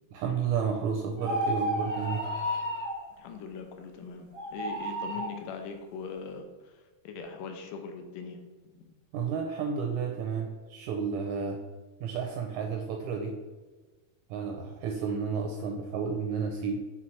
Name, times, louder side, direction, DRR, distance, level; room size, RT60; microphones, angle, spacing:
voice 1, 0.1-2.3 9.1-11.6 12.0-13.4 14.3-16.8, right 6 dB, 80° right, 3 dB, 1.7 m, -31 dB
sound 1, 1.2-3.0 4.3-5.3, equal, 25° right, 0.7 m, -31 dB
voice 2, 3.2-8.4 8.8-8.9, left 5 dB, 80° left, 5 dB, 2.2 m, -41 dB
6.0 x 4.2 x 4.5 m, 1.3 s
omnidirectional pair, 3.9 m